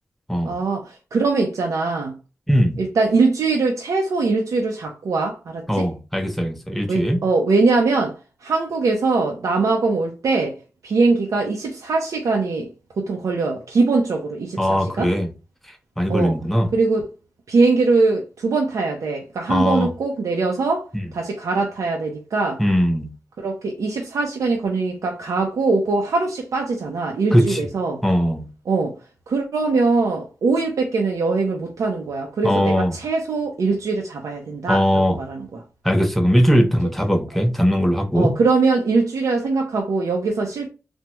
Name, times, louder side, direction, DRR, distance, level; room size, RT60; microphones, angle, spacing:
voice 1, 0.4-2.2 2.8-5.9 6.9-8.2 8.4-12.7 13.0-15.1 16.1-16.4 16.7-17.1 17.5-22.6 23.4-28.0 28.7-28.9 29.3-35.6 38.1-40.7, right 3 dB, 85° right, 0.5 m, -22 dB
voice 2, 2.5-2.8 5.7-7.2 14.6-15.3 16.0-16.7 19.5-19.9 22.6-23.1 27.3-27.6 28.0-28.5 32.4-33.0 34.7-35.2 35.8-38.3, equal, 5° left, 0.6 m, -19 dB
3.4 x 2.0 x 2.9 m
cardioid pair, 75°, 5 cm